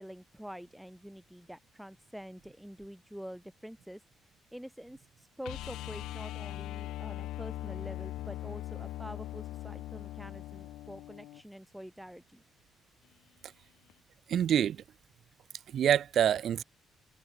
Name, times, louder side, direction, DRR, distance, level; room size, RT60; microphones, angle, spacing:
voice 1, 0.0-4.0 4.5-12.4, equal, ahead, 5.5 m, -46 dB
sound 1, 5.4-11.4 13.9-14.0, left 15 dB, 90° left, 1.6 m, -40 dB
voice 2, 14.3-14.8 15.7-16.6, right 9 dB, 65° right, 2.4 m, -26 dB
cardioid pair, 90°, 0 cm